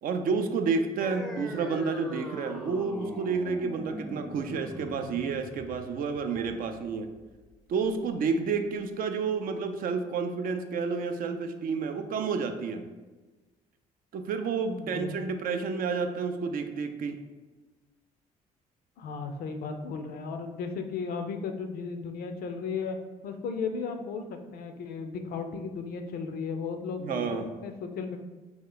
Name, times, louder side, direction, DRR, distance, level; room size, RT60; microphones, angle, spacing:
voice 1, 0.0-7.1 7.7-12.9 14.1-17.2 27.0-27.5, right 5 dB, 55° right, 7 dB, 0.4 m, -30 dB
sound 1, 1.0-8.0, equal, ahead, 0.5 m, -41 dB
voice 2, 14.7-15.1 19.0-23.0 23.2-28.2, left 5 dB, 60° left, 6 dB, 0.4 m, -35 dB
2.9 x 2.3 x 3.8 m, 1.2 s
hypercardioid pair, 60°, 17 cm